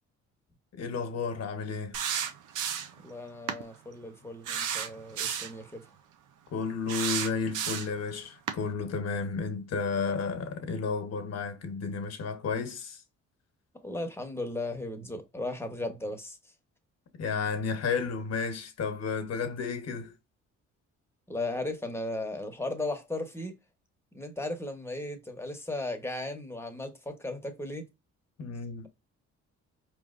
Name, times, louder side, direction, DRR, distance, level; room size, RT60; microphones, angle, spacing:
voice 1, 0.7-2.0 6.5-13.0 17.2-20.1 28.4-28.9, left 5 dB, 55° left, 1.1 m, -32 dB
sound 1, 1.9-3.0 3.5-3.6 4.4-5.6 6.9-8.0 8.5-8.6, right 8 dB, 80° right, 0.7 m, -32 dB
voice 2, 3.0-5.8 13.8-16.4 21.3-23.5 24.1-27.9, left 2 dB, 10° left, 1.1 m, -36 dB
4.7 x 3.2 x 2.5 m
cardioid pair, 90°, 30 cm